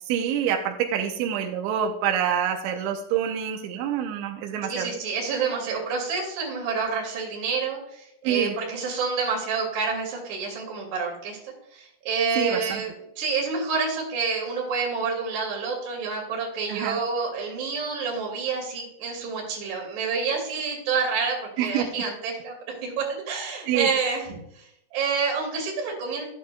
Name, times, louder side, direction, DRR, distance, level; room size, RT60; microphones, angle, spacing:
voice 1, 0.1-4.9 8.2-8.6 12.4-12.8 16.7-17.0 21.6-21.9 23.7-23.9, right 9 dB, 85° right, 3 dB, 3.1 m, -26 dB
voice 2, 4.6-22.5 22.8-26.2, right 5 dB, 45° right, -1 dB, 3.3 m, -28 dB
12.5 x 8.7 x 2.3 m, 0.77 s
omnidirectional pair, 5.3 m